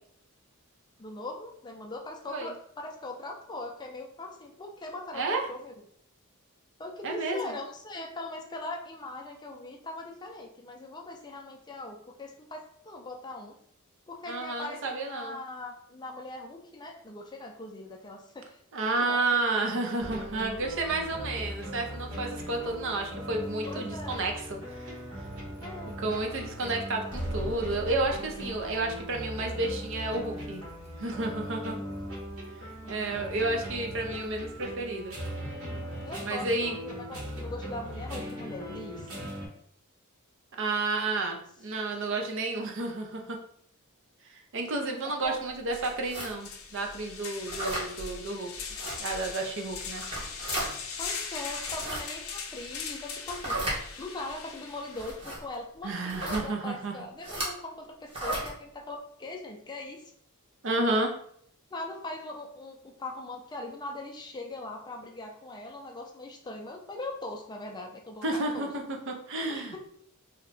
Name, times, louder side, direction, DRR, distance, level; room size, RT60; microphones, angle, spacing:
voice 1, 1.0-5.7 6.8-13.6 14.1-19.4 23.7-24.2 25.6-25.9 31.6-32.0 32.8-33.3 36.0-39.1 45.0-45.3 51.0-53.6 54.0-60.0 61.7-68.7 69.5-69.8, left 2 dB, 20° left, 2 dB, 0.4 m, -41 dB
voice 2, 5.1-5.4 7.0-7.5 14.3-15.4 18.7-25.0 26.0-30.6 31.0-31.8 32.9-35.2 36.2-36.7 40.6-43.4 44.3-48.5 49.0-50.0 55.8-56.9 60.6-61.1 68.2-69.8, right 2 dB, 60° right, 2 dB, 0.6 m, -31 dB
sound 1, 20.0-39.5, equal, 75° right, 1.1 m, -39 dB
sound 2, 45.2-45.3 45.7-55.2, left 5 dB, 70° left, 0.5 m, -40 dB
sound 3, 46.0-46.3 47.5-47.9 48.7-49.0 49.9-50.7 51.6-52.0 53.3-53.8 54.9-55.4 56.1-56.4 57.2-57.5 58.1-58.5, right 1 dB, 25° right, 1.0 m, -34 dB
2.7 x 2.2 x 3.9 m, 0.65 s
head